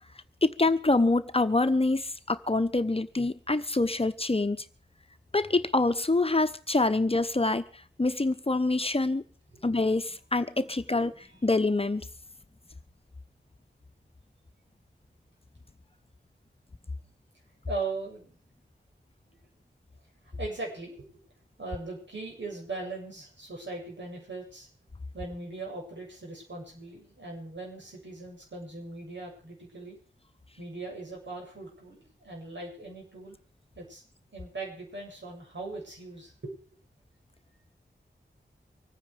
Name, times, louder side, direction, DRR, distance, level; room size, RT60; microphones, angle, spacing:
voice 1, 0.4-4.6 5.3-7.6 8.0-9.2 9.6-12.1, left 2 dB, 30° left, 1.0 m, -26 dB
voice 2, 17.7-18.4 20.3-21.1 21.6-24.7 25.1-30.0 30.6-33.4 33.8-34.0 34.3-36.5, right 3 dB, 75° right, 7.5 m, -39 dB
25.0 x 9.6 x 5.1 m
wide cardioid pair, 55°, 19 cm